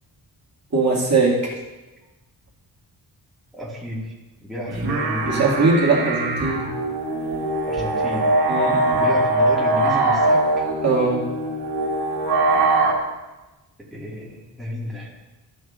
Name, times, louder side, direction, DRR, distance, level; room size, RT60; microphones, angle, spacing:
voice 1, 0.7-1.5 5.2-6.7 8.5-9.0 10.8-11.2, right 3 dB, 40° right, -5 dB, 2.2 m, -20 dB
voice 2, 3.5-4.1 4.4-5.8 7.7-8.4 8.9-10.7 13.9-15.1, left 1 dB, ahead, -6 dB, 1.9 m, -31 dB
sound 1, 4.7-12.9, right 2 dB, 65° right, 1.6 m, -22 dB
14.0 x 6.3 x 2.5 m, 1.1 s
wide cardioid pair, 120°, 41 cm